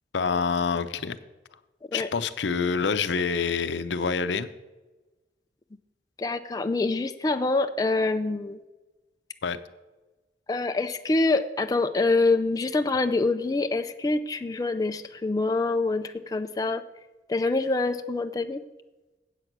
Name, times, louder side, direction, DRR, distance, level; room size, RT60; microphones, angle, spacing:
voice 1, 0.1-1.2 1.9-4.5 9.4-9.6, left 5 dB, 90° left, 12 dB, 0.6 m, -26 dB
voice 2, 6.2-8.6 10.5-16.8 17.3-18.6, left 3 dB, 20° left, 7 dB, 0.3 m, -25 dB
8.1 x 5.9 x 7.9 m, 1.1 s
head